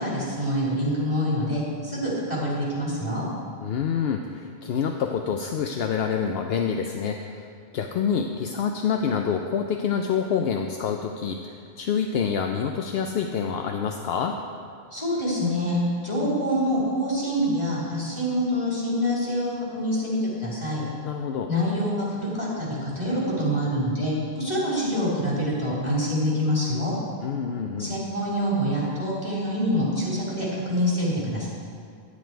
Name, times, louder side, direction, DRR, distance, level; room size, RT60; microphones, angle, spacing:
voice 1, 0.0-3.2 14.9-20.8 21.5-26.9 27.8-31.5, equal, 25° left, -7 dB, 3.1 m, -26 dB
voice 2, 3.6-14.4 21.0-21.5 27.2-27.9, left 7 dB, 70° left, 4 dB, 0.8 m, -27 dB
9.9 x 9.6 x 4.5 m, 2.2 s
omnidirectional pair, 1.1 m